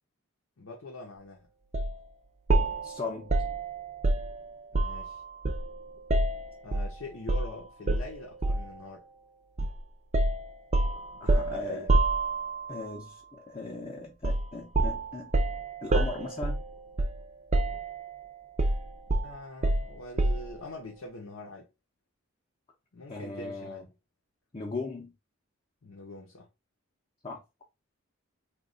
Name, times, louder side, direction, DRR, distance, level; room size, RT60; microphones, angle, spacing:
voice 1, 0.6-1.4 4.7-5.2 6.6-9.0 11.1-12.0 19.2-21.7 22.9-23.9 25.8-26.5, left 2 dB, 90° left, 0.7 m, -43 dB
sound 1, 1.7-2.0 2.5-5.1 5.4-6.9 7.3-7.5 7.9-8.8 9.6-9.8 10.1-12.7 14.2-14.5 14.7-17.3 17.5-18.1 18.6-20.6, right 2 dB, 35° right, 0.4 m, -27 dB
voice 2, 2.8-3.4 11.2-11.9 12.7-15.4 15.8-16.6 23.1-23.9 24.5-25.1 27.2-27.4, left 3 dB, 25° left, 0.6 m, -38 dB
3.1 x 2.3 x 3.7 m
head